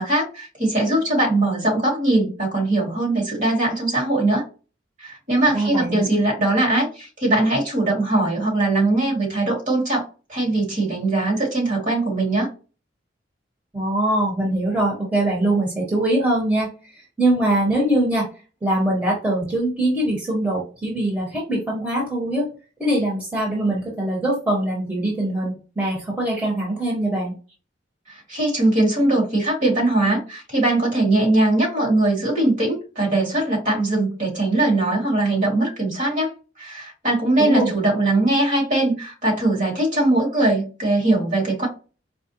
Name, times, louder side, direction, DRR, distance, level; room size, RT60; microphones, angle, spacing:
voice 1, 0.0-4.4 5.0-10.0 10.3-12.5 28.1-36.3 36.6-41.7, right 2 dB, 45° right, -2 dB, 2.1 m, -21 dB
voice 2, 5.5-6.0 13.7-18.3 18.6-22.5 22.8-27.4 37.4-37.7, right 1 dB, 10° right, -4 dB, 1.2 m, -22 dB
4.8 x 2.3 x 2.8 m, 0.34 s
head